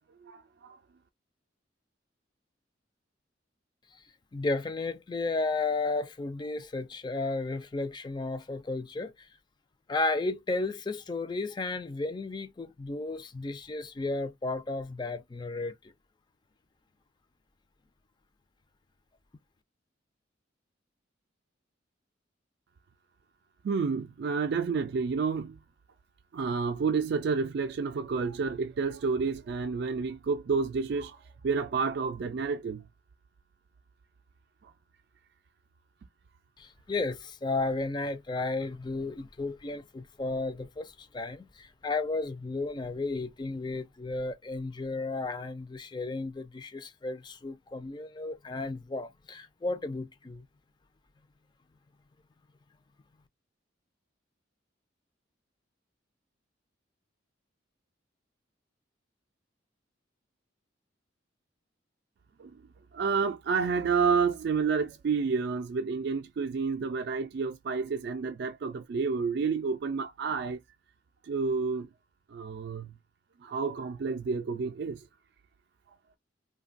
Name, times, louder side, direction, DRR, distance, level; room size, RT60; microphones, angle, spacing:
voice 1, 0.2-0.8 23.6-25.6 26.3-32.8 34.6-34.7 62.4-62.6 62.9-70.6 71.2-71.9 72.3-73.0 73.4-75.1, right 5 dB, 60° right, 0.3 m, -30 dB
voice 2, 4.3-9.1 9.9-15.7 36.6-50.5, left 3 dB, 25° left, 0.4 m, -33 dB
3.0 x 2.2 x 2.5 m
head